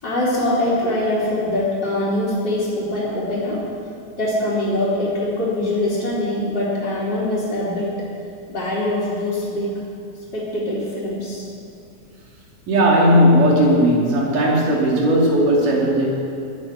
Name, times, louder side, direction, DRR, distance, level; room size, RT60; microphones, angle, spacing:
voice 1, 0.0-3.6 4.2-7.9 8.5-9.7 10.3-11.5, left 1 dB, 35° left, -8 dB, 4.0 m, -23 dB
voice 2, 12.7-16.1, equal, 90° right, -3 dB, 4.4 m, -16 dB
19.0 x 12.5 x 4.8 m, 2.7 s
omnidirectional pair, 3.6 m